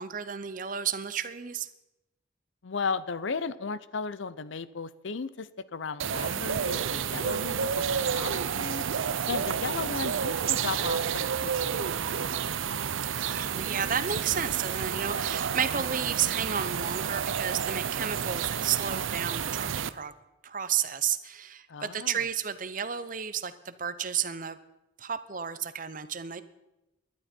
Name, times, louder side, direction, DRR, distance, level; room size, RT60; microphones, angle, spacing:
voice 1, 0.0-1.7 13.3-20.1 20.4-24.6 25.0-26.4, right 8 dB, 40° right, 13 dB, 0.7 m, -32 dB
voice 2, 2.6-8.8 9.3-12.3 21.7-22.2, left 4 dB, 75° left, 16 dB, 0.6 m, -35 dB
sound 1, 6.0-19.9, right 7 dB, 85° right, 0.6 m, -30 dB
19.0 x 12.0 x 4.5 m, 0.97 s
head